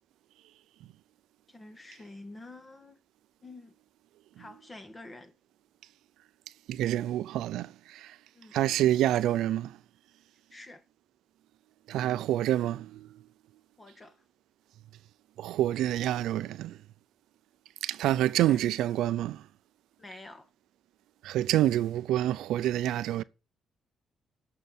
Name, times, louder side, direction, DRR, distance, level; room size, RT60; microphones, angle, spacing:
voice 1, 1.5-3.0 3.4-3.8 4.4-5.3 8.3-8.6 10.5-10.8 13.8-14.2 18.5-18.6 20.0-20.5, left 2 dB, 25° left, 1.9 m, -48 dB
voice 2, 6.7-8.1 8.5-9.8 11.9-13.1 15.4-16.8 17.8-19.4 21.2-23.2, right 13 dB, 85° right, 0.6 m, -27 dB
17.5 x 6.8 x 4.5 m
cardioid pair, 90°, 0 cm